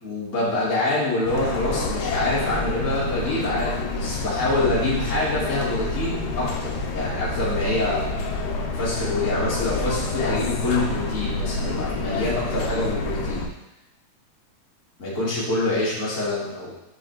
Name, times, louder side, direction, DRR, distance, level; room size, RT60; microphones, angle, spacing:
voice 1, 0.0-8.1 8.7-13.4 15.0-16.7, left 2 dB, 35° left, -8 dB, 1.3 m, -26 dB
sound 1, 1.2-13.5, left 2 dB, 80° left, 2.3 m, -28 dB
6.4 x 6.1 x 3.1 m, 0.89 s
omnidirectional pair, 3.8 m